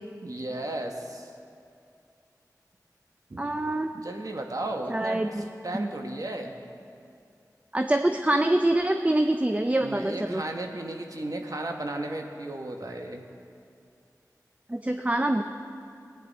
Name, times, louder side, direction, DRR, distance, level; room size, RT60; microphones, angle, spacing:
voice 1, 0.2-1.3 3.3-3.4 3.9-5.2 5.6-6.6 9.8-13.2, right 1 dB, 60° right, 3 dB, 1.3 m, -34 dB
voice 2, 3.4-3.9 4.9-5.5 7.7-10.4 14.7-15.4, right 1 dB, 20° right, 6 dB, 0.5 m, -25 dB
18.0 x 9.4 x 4.1 m, 2.5 s
wide cardioid pair, 45°, 7 cm